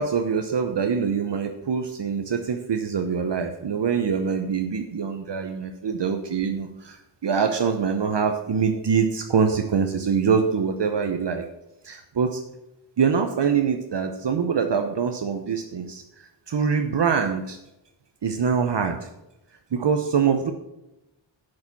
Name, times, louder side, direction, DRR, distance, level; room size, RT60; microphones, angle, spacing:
voice 1, 0.0-11.4 11.8-12.4 13.0-17.6 18.2-19.1 19.7-20.5, right 6 dB, 60° right, 5 dB, 0.9 m, -24 dB
6.4 x 6.3 x 7.2 m, 0.90 s
cardioid pair, 50°, 47 cm